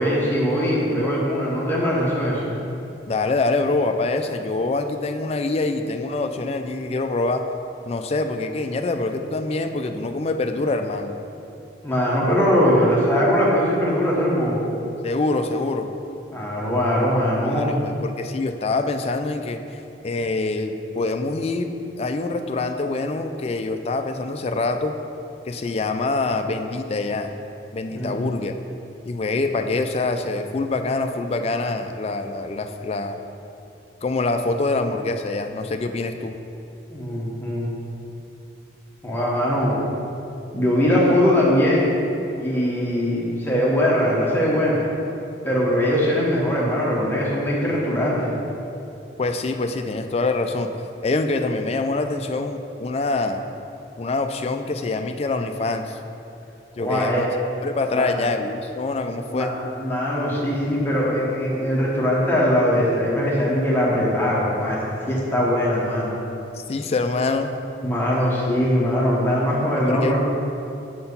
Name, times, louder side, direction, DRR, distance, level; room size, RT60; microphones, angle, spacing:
voice 1, 0.0-2.5 11.8-14.6 16.3-17.8 27.9-28.2 36.9-37.7 39.0-39.8 40.5-41.9 42.4-44.8 45.4-48.3 56.8-57.2 57.9-58.1 59.3-66.1 67.8-70.2, equal, 10° left, -6 dB, 1.2 m, -21 dB
voice 2, 3.1-7.4 7.9-11.1 15.0-15.9 17.4-19.6 20.0-21.7 22.0-25.0 25.5-27.3 27.7-28.5 29.0-33.2 34.0-36.4 49.2-50.7 51.0-53.4 54.0-56.0 56.8-57.3 57.6-59.5 66.5-67.6 69.8-70.2, left 3 dB, 35° left, 6 dB, 0.4 m, -25 dB
6.7 x 4.4 x 5.4 m, 2.8 s
head